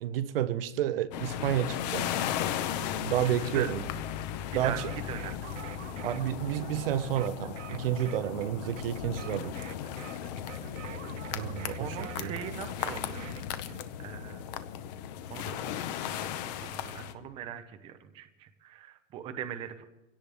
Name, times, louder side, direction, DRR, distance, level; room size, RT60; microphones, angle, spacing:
voice 1, 0.0-2.1 3.0-3.8 4.5-4.9 6.0-9.5 11.3-12.3, right 11 dB, 45° right, 0.8 m, -30 dB
sound 1, 1.1-17.1, left 9 dB, 30° left, 1.0 m, -36 dB
sound 2, 4.7-13.4, right 11 dB, 65° right, 1.1 m, -47 dB
voice 2, 11.8-13.4 13.7-14.4 15.3-16.3 16.6-19.8, right 10 dB, 15° right, 0.7 m, -41 dB
24.0 x 17.0 x 3.5 m
hypercardioid pair, 160°, 40 cm